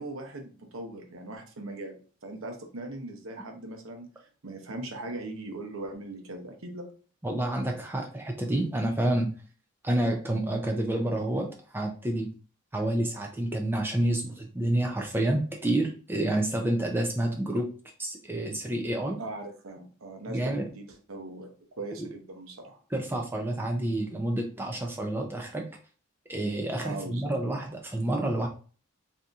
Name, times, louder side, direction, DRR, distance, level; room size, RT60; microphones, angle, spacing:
voice 1, 0.0-6.9 19.2-21.5 21.8-22.8 26.8-27.3, right 2 dB, 85° right, 3 dB, 0.8 m, -40 dB
voice 2, 7.2-9.3 9.8-12.3 12.7-17.7 18.0-19.2 20.3-20.7 22.9-25.7 26.3-28.5, right 1 dB, 10° right, 1 dB, 0.4 m, -29 dB
3.8 x 2.7 x 2.3 m, 0.38 s
head